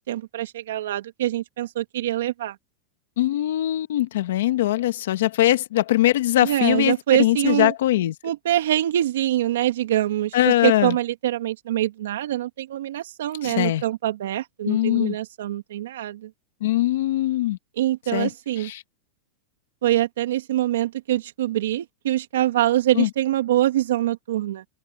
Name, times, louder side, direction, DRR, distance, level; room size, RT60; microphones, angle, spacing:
voice 1, 0.0-2.6 6.4-7.7 8.2-16.3 17.8-18.7 19.8-24.7, right 13 dB, 85° right, 2.9 m, -24 dB
voice 2, 3.2-6.9 7.2-8.1 10.3-10.9 13.4-13.8 14.7-15.1 16.6-17.6 18.1-18.3 18.6-18.8 23.0-23.1, left 14 dB, 75° left, 1.6 m, -21 dB
supercardioid pair, 175°, 0 cm